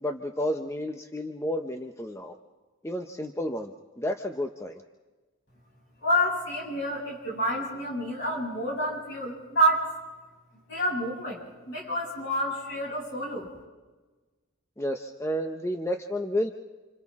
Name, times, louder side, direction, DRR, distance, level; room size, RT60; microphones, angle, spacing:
voice 1, 0.0-2.3 2.8-3.7 4.0-4.8 14.8-16.5, equal, 15° left, 4 dB, 0.8 m, -31 dB
voice 2, 6.0-9.9 10.7-13.5, equal, 60° left, -3 dB, 7.7 m, -28 dB
30.0 x 27.0 x 3.7 m, 1.3 s
head